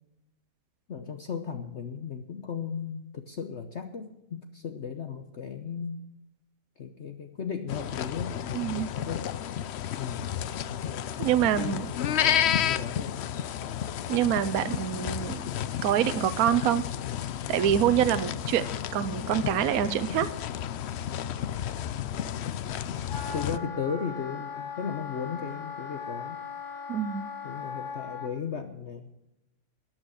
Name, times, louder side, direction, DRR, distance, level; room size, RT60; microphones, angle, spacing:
voice 1, 0.9-6.0 6.8-9.4 9.9-10.3 10.5-11.1 11.5-13.2 23.3-26.4 27.4-29.1, left 6 dB, 50° left, 6 dB, 1.1 m, -36 dB
sound 1, 7.7-23.6, left 10 dB, 70° left, 0.6 m, -32 dB
voice 2, 8.5-8.9 11.2-11.9 14.1-15.4 15.8-16.8 17.5-18.6 18.9-20.3 26.9-27.3, right 10 dB, 70° right, 13 dB, 1.2 m, -25 dB
Wind instrument woodwind instrument, 23.1-28.3, left 5 dB, 35° left, 3.3 m, -39 dB
13.5 x 9.3 x 6.3 m, 0.89 s
omnidirectional pair, 1.7 m